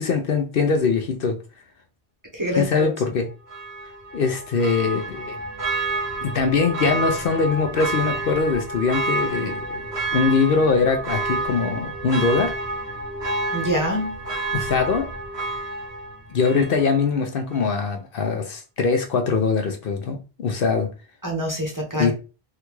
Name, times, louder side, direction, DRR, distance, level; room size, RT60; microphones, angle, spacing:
voice 1, 0.0-1.4 2.5-3.3 4.1-5.4 6.2-12.5 14.5-15.1 16.3-20.9 21.9-22.1, left 5 dB, 65° left, 0.8 m, -22 dB
voice 2, 2.3-2.9 13.5-14.2 21.2-22.1, equal, 20° right, 0.7 m, -25 dB
Church bell, 3.5-17.1 17.5-17.6, right 3 dB, 85° right, 1.3 m, -29 dB
3.6 x 2.3 x 3.0 m
omnidirectional pair, 1.1 m